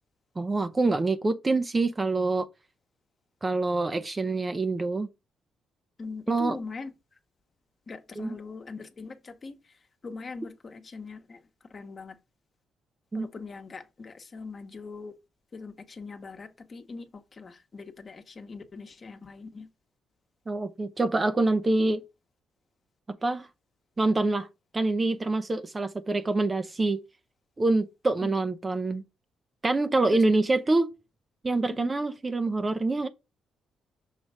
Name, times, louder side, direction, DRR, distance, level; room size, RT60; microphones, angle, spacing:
voice 1, 0.4-2.5 3.4-5.1 6.3-6.6 8.2-8.4 13.1-13.3 20.5-22.0 23.1-23.5 24.0-24.5 24.7-27.0 27.6-29.0 29.6-30.9 31.4-33.1, right 2 dB, 25° right, 0.6 m, -26 dB
voice 2, 6.0-6.9 7.9-11.4 11.7-12.2 13.1-15.2 15.5-19.7 28.2-28.3 30.1-30.6 31.7-31.9, left 4 dB, 40° left, 1.1 m, -42 dB
6.5 x 3.0 x 4.9 m
cardioid pair, 90°, 0 cm